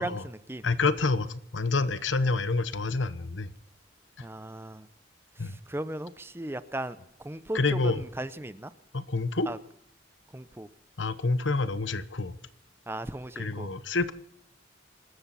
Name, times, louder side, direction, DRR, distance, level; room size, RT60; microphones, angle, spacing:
voice 1, 0.0-0.6 4.2-4.9 5.4-8.7 9.5-9.6 10.3-10.7 12.9-13.7, right 1 dB, 15° right, 0.7 m, -37 dB
voice 2, 0.6-3.5 4.2-4.3 5.4-5.6 7.5-8.0 8.9-9.5 11.0-12.3 13.4-14.1, left 3 dB, 85° left, 1.0 m, -28 dB
25.5 x 13.5 x 4.2 m
head